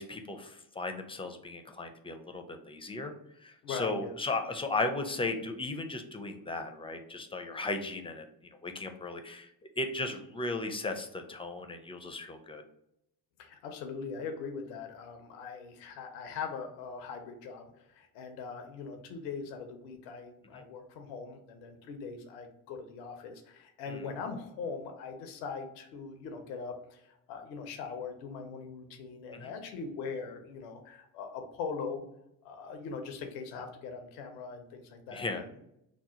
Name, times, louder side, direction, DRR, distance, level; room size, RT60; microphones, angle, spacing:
voice 1, 0.0-3.1 3.4-8.2 8.6-9.5 9.8-12.6 20.5-20.6 23.9-24.0 29.3-29.5 35.1-35.4, left 2 dB, 10° left, 5 dB, 0.4 m, -36 dB
voice 2, 3.6-4.1 13.4-32.0 32.4-35.6, left 5 dB, 90° left, 5 dB, 0.6 m, -41 dB
2.8 x 2.1 x 4.1 m, 0.81 s
hypercardioid pair, 55°, 48 cm